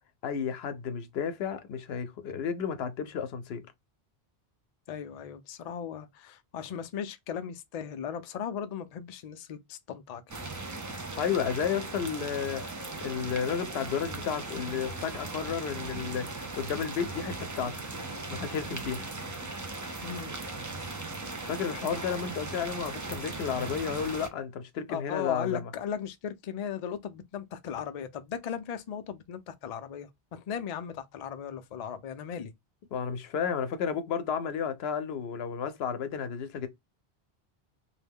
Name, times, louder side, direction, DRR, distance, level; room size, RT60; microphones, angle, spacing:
voice 1, 0.2-3.6 11.2-12.6 13.0-16.3 16.6-17.8 18.3-19.0 21.5-25.7 32.9-36.7, left 7 dB, 90° left, 0.8 m, -32 dB
voice 2, 4.9-10.2 20.0-20.4 24.9-32.5, left 8 dB, 55° left, 0.5 m, -37 dB
sound 1, 10.3-24.3, right 3 dB, 30° right, 0.3 m, -38 dB
2.6 x 2.1 x 3.4 m
omnidirectional pair, 1.0 m